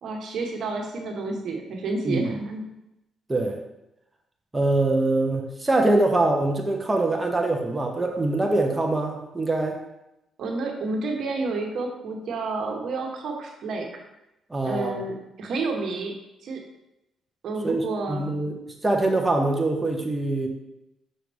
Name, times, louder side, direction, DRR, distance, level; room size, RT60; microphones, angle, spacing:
voice 1, 0.0-2.6 10.4-14.0 14.6-16.2 16.4-16.6 17.4-18.3, right 3 dB, 65° right, 2 dB, 1.2 m, -30 dB
voice 2, 4.5-9.8 14.5-15.0 17.6-20.5, right 2 dB, 15° right, 2 dB, 0.9 m, -24 dB
6.4 x 5.7 x 3.5 m, 0.90 s
cardioid pair, 90°, 0 cm